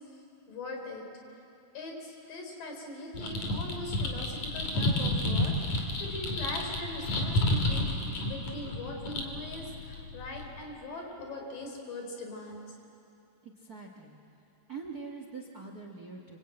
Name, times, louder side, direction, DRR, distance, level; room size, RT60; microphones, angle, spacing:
voice 1, 0.5-1.0 1.7-7.9 8.3-12.6, left 2 dB, 80° left, 2 dB, 5.4 m, -41 dB
sound 1, 3.1-10.6, left 1 dB, 60° left, 4.1 m, -31 dB
voice 2, 13.4-14.2 14.7-16.4, right 4 dB, 40° right, 2 dB, 1.4 m, -43 dB
26.0 x 26.0 x 8.9 m, 2.7 s
omnidirectional pair, 3.8 m